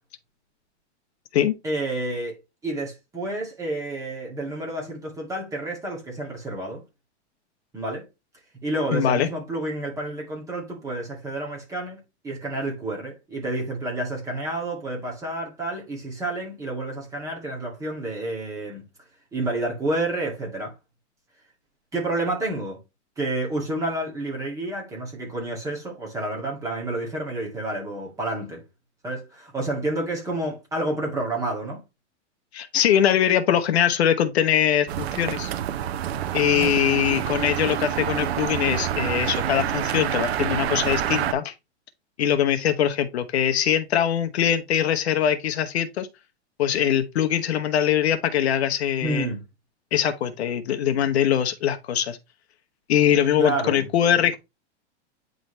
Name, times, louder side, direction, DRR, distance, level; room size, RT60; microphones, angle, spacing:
voice 1, 1.6-6.8 7.7-8.1 8.6-12.0 12.2-18.8 19.3-20.7 21.9-22.8 23.2-28.6 29.0-31.8 36.6-36.7 49.0-49.4 53.4-53.9, right 2 dB, 10° right, 2.2 m, -29 dB
voice 2, 8.9-9.3 32.5-35.5 36.3-41.5 42.2-46.1 46.6-49.3 49.9-52.2 52.9-54.4, left 9 dB, 65° left, 1.0 m, -22 dB
sound 1, 34.9-41.3, right 10 dB, 60° right, 0.8 m, -27 dB
9.2 x 3.9 x 3.2 m
supercardioid pair, 170°, 35 cm